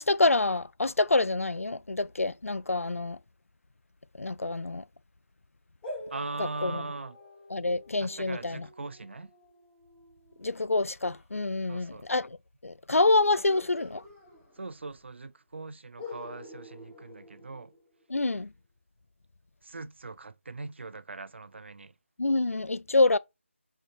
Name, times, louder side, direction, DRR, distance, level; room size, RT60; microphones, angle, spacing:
voice 1, 0.0-3.2 4.2-4.8 6.4-6.8 7.5-8.7 10.4-12.4 12.6-14.0 18.1-18.5 22.2-23.2, left 2 dB, 85° left, 0.4 m, -26 dB
sound 1, 5.8-11.3 13.5-15.0 15.2-15.3 16.0-18.2, left 2 dB, 5° left, 1.1 m, -47 dB
voice 2, 6.1-7.2 8.0-9.3 11.7-12.1 14.6-17.7 19.6-21.9, right 3 dB, 55° right, 0.6 m, -40 dB
5.5 x 4.0 x 4.4 m
figure-of-eight pair, 160°, 7 cm